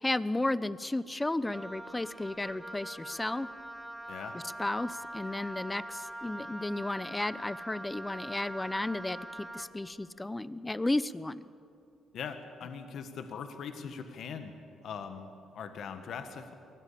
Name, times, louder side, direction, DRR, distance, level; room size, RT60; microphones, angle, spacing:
voice 1, 0.0-3.5 4.3-11.5, left 2 dB, 15° left, 17 dB, 0.7 m, -33 dB
Wind instrument woodwind instrument, 1.5-9.8, right 1 dB, 5° right, 1.6 m, -43 dB
voice 2, 4.1-4.4 12.1-14.5 14.8-16.5, left 6 dB, 70° left, 8 dB, 1.5 m, -41 dB
23.0 x 16.0 x 8.5 m, 2.5 s
cardioid pair, 90°, 0 cm